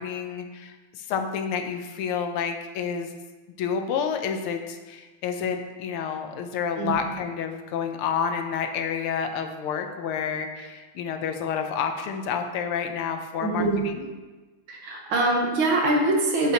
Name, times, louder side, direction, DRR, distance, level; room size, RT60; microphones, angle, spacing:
voice 1, 0.0-3.1 3.6-14.1, left 7 dB, 90° left, 6 dB, 1.7 m, -29 dB
voice 2, 13.4-13.9 14.7-16.5, right 2 dB, 70° right, 0 dB, 1.9 m, -23 dB
8.3 x 7.6 x 2.9 m, 1.2 s
omnidirectional pair, 2.3 m